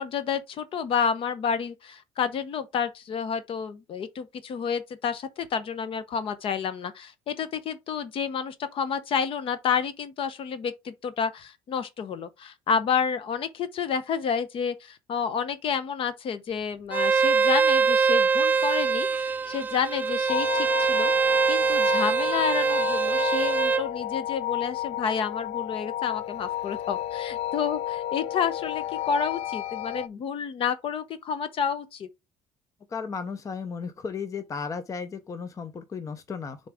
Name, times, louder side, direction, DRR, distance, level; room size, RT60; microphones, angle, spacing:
voice 1, 0.0-32.1, left 7 dB, 55° left, 0.9 m, -30 dB
Bowed string instrument, 16.9-23.8, right 5 dB, 15° right, 0.3 m, -23 dB
sound 1, 20.3-30.1, left 13 dB, 70° left, 0.4 m, -32 dB
voice 2, 32.9-36.6, left 5 dB, 30° left, 0.7 m, -34 dB
6.7 x 3.9 x 3.5 m
cardioid pair, 110°, 11 cm